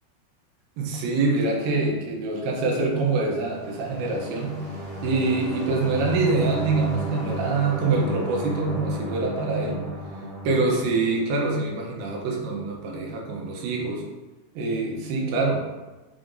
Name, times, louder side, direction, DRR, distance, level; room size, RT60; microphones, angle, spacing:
voice 1, 0.8-4.5 5.0-9.8 10.4-14.0 14.6-15.7, right 3 dB, 75° right, -1 dB, 2.4 m, -25 dB
sound 1, 3.1-11.8, equal, 65° left, 1.0 m, -34 dB
5.9 x 3.3 x 2.5 m, 1.1 s
omnidirectional pair, 4.3 m